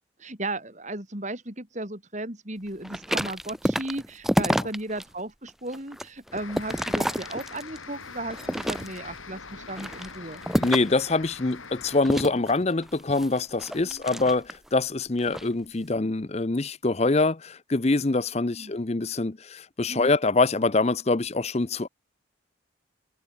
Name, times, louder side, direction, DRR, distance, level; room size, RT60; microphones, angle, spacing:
voice 1, 0.2-10.4 13.8-14.0 18.5-18.7 19.9-20.1, right 2 dB, 35° right, 4.3 m, -35 dB
sound 1, 2.8-5.1 5.5-7.8 8.3-9.2 9.7-11.0 12.0-14.7 15.2-15.5, equal, ahead, 0.8 m, -29 dB
sound 2, 6.3-12.0, left 5 dB, 85° left, 5.2 m, -43 dB
voice 2, 10.6-21.9, left 3 dB, 30° left, 0.6 m, -25 dB
head